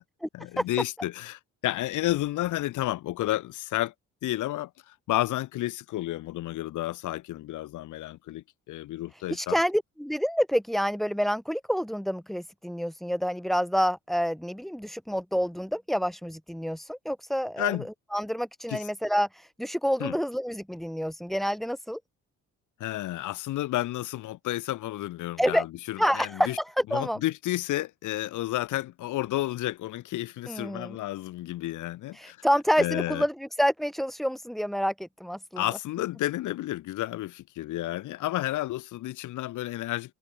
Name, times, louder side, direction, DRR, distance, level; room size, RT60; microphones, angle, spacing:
voice 1, 0.3-3.9 4.2-9.6 17.6-17.9 18.7-18.9 20.0-20.2 22.8-26.6 26.9-32.4 32.8-33.2 35.6-40.1, left 15 dB, 80° left, 1.0 m, -31 dB
voice 2, 9.3-17.8 18.1-22.0 25.4-25.6 26.0-27.2 30.5-31.0 32.1-35.6, equal, ahead, 1.3 m, -28 dB
cardioid pair, 90°, 30 cm